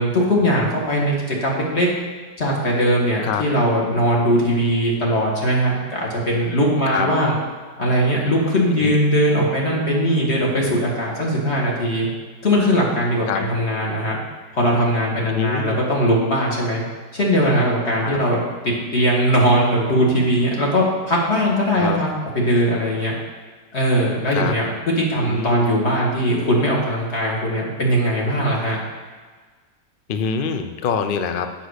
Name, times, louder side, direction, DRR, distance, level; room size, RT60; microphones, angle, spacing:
voice 1, 0.0-1.9 2.4-7.4 7.8-12.1 12.4-14.2 14.5-16.8 17.1-18.4 18.9-22.1 22.3-23.1 23.7-28.8, equal, 40° left, -3 dB, 2.1 m, -20 dB
voice 2, 15.3-15.8 18.0-18.2 21.8-22.0 24.3-24.5 25.1-25.6 30.1-31.7, left 6 dB, 65° left, 7 dB, 0.5 m, -25 dB
8.2 x 6.0 x 6.4 m, 1.5 s
omnidirectional pair, 1.8 m